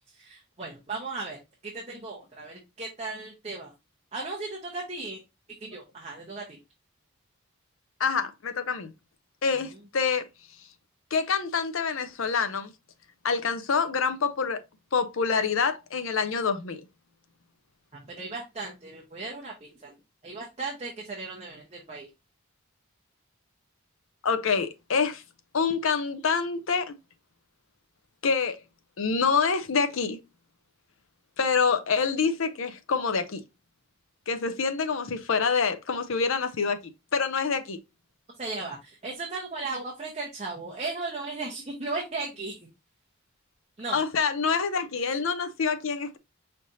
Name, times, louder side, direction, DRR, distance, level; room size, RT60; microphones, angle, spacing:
voice 1, 0.1-3.7 4.1-5.2 5.6-6.6 17.9-19.9 20.2-22.1 38.4-42.7 43.8-44.0, right 3 dB, 30° right, 0.8 m, -36 dB
voice 2, 8.0-8.9 9.4-10.3 11.1-12.7 13.2-14.6 14.9-16.8 24.2-25.2 25.5-27.0 28.2-28.6 29.0-30.2 31.4-33.4 34.3-36.8 37.1-37.8 43.9-46.2, left 5 dB, 70° left, 0.6 m, -26 dB
5.2 x 3.3 x 2.7 m
head